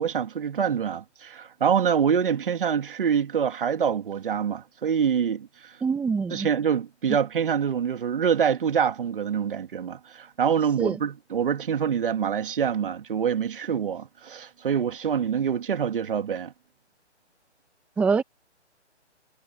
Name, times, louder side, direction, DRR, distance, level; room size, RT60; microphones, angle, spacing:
voice 1, 0.0-5.7 6.3-16.5, right 7 dB, 45° right, 2.4 m, -25 dB
voice 2, 5.8-6.5 10.8-11.0 18.0-18.2, right 5 dB, 5° right, 1.3 m, -24 dB
hypercardioid pair, 155°, 36 cm